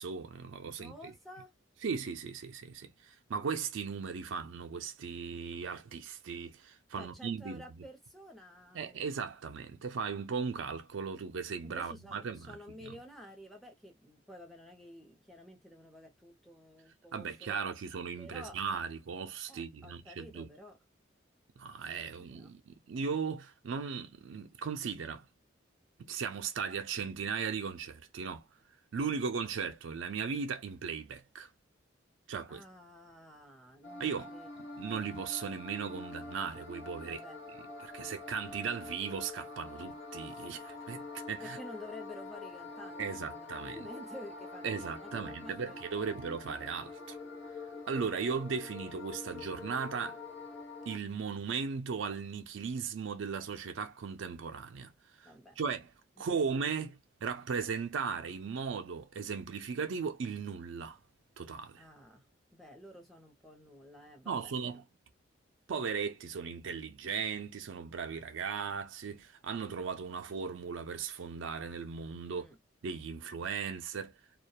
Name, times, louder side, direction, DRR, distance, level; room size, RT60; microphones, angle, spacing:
voice 1, 0.0-0.9 1.8-7.6 8.7-12.9 17.1-20.5 21.6-25.2 26.1-28.4 28.9-31.5 32.3-32.6 34.0-34.3 34.8-37.2 37.8-41.6 43.0-43.8 44.6-47.2 47.9-50.2 50.9-54.9 55.2-55.9 56.2-61.0 61.4-61.8 64.3-64.8 65.7-72.5 72.8-74.2, right 5 dB, 80° right, 0.4 m, -37 dB
voice 2, 0.8-1.5 7.0-9.0 11.6-17.6 18.2-18.6 19.5-20.8 22.2-22.5 32.5-34.9 37.0-37.4 41.4-46.1 55.2-55.6 56.2-56.9 61.8-64.8 72.3-72.6, equal, ahead, 0.7 m, -51 dB
sound 1, 33.8-51.0, left 3 dB, 65° left, 0.8 m, -45 dB
2.3 x 2.2 x 2.7 m
head